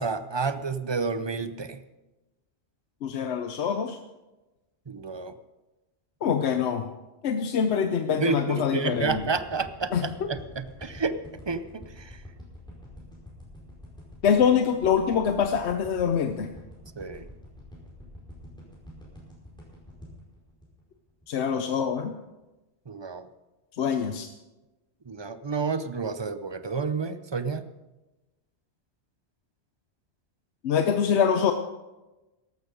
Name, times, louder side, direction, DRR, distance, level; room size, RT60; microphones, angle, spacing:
voice 1, 0.0-1.8 4.9-5.3 8.2-9.9 10.3-11.2 11.5-12.2 17.0-17.3 22.9-23.3 25.1-27.6, right 4 dB, 30° right, 12 dB, 0.6 m, -30 dB
voice 2, 3.0-4.0 6.2-6.9 7.2-9.2 9.9-10.0 14.2-16.5 21.3-22.1 23.8-24.3 30.6-31.5, left 7 dB, 80° left, 7 dB, 1.0 m, -24 dB
sound 1, 9.2-21.4 21.8-21.9, left 1 dB, 5° left, 4.7 m, -46 dB
14.0 x 12.0 x 5.2 m, 1.1 s
omnidirectional pair, 1.1 m